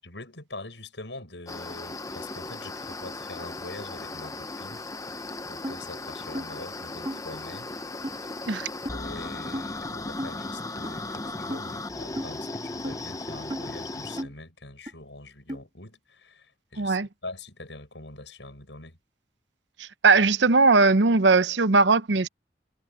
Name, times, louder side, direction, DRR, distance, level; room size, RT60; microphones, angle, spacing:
voice 1, 0.0-7.7 8.9-19.0, left 2 dB, 85° left, 7.8 m, -43 dB
sound 1, 1.5-14.2, left 2 dB, 20° left, 0.9 m, -36 dB
sound 2, 5.6-5.8 6.3-6.5 7.0-7.2 8.0-8.1 8.8-9.0 9.5-9.7 10.2-10.3 10.8-10.9 11.5-11.6 12.2-12.3 12.8-13.0 13.5-13.6 14.2-14.3 14.9-15.0 15.5-15.6, equal, 25° right, 3.7 m, -33 dB
voice 2, 16.8-17.1 19.8-22.3, right 3 dB, 85° right, 0.8 m, -19 dB
head